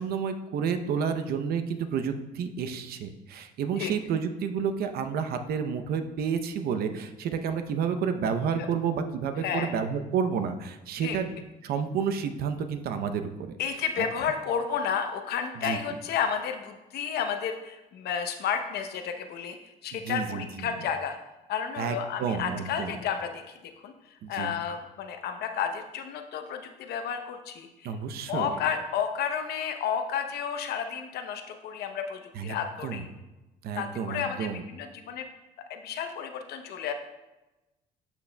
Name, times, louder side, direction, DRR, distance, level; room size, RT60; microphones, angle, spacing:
voice 1, 0.0-11.3 11.6-13.6 15.6-15.8 19.9-20.7 21.8-23.0 24.2-24.5 27.8-28.6 32.3-32.6 32.8-33.0 33.6-34.6, right 6 dB, 65° right, 8 dB, 0.7 m, -30 dB
voice 2, 9.4-9.7 11.0-11.2 13.6-21.2 21.5-23.9 24.3-28.0 28.3-33.1 33.8-35.3 35.7-36.9, left 7 dB, 70° left, 6 dB, 0.8 m, -32 dB
12.0 x 5.9 x 2.2 m, 1.0 s
cardioid pair, 110°, 17 cm